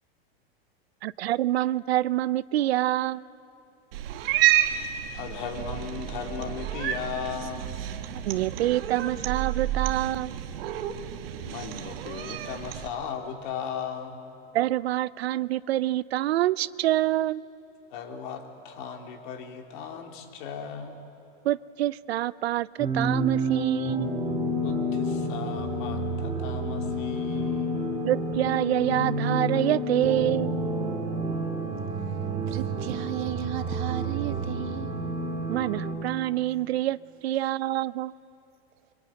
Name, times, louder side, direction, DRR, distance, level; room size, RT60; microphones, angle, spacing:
voice 1, 1.0-3.3 8.1-10.4 14.5-17.4 21.4-24.1 28.0-30.5 35.5-37.0 37.2-38.1, right 14 dB, 85° right, 19 dB, 0.7 m, -26 dB
Cat, 3.9-12.9, right 12 dB, 70° right, 1.7 m, -30 dB
voice 2, 5.1-7.8 11.4-14.2 17.9-21.0 24.6-27.8, left 7 dB, 50° left, 3 dB, 3.4 m, -37 dB
sound 1, 22.8-35.9, right 1 dB, 15° right, 2.8 m, -29 dB
voice 3, 32.5-34.9, right 12 dB, 50° right, 8 dB, 1.6 m, -34 dB
25.5 x 24.5 x 9.0 m, 2.8 s
supercardioid pair, 155°, 31 cm